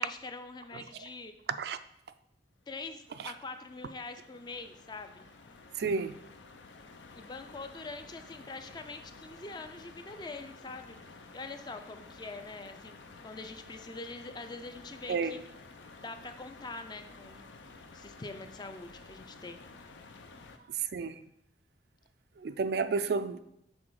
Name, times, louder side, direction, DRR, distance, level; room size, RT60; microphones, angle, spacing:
voice 1, 0.0-1.3 2.7-5.3 7.1-11.0 11.3-15.4 16.0-17.5 17.9-19.7, left 3 dB, 25° left, 8 dB, 0.4 m, -44 dB
sound 1, 2.6-20.6, left 3 dB, 80° left, 0.6 m, -52 dB
voice 2, 5.7-6.2 15.1-15.4 20.7-21.2 22.4-23.4, right 4 dB, 55° right, 11 dB, 0.3 m, -31 dB
6.2 x 4.1 x 4.7 m, 0.77 s
head